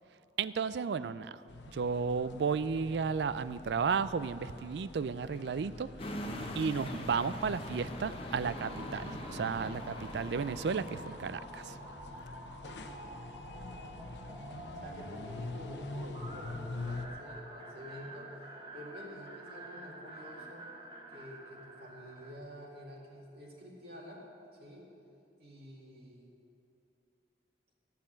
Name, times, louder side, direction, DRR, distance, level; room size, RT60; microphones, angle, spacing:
voice 1, 0.4-1.4 1.7-5.9 6.5-11.8, right 5 dB, 75° right, 15 dB, 0.4 m, -33 dB
sound 1, 1.5-17.1, left 2 dB, 90° left, 0.9 m, -46 dB
sound 2, 6.0-11.0, left 1 dB, 30° left, 1.0 m, -42 dB
sound 3, 8.5-22.4, right 1 dB, 30° right, 1.3 m, -49 dB
voice 2, 14.7-20.7 21.1-24.2 24.6-24.9 25.4-26.3, equal, 60° right, -4 dB, 2.1 m, -49 dB
14.5 x 5.8 x 8.7 m, 2.6 s
head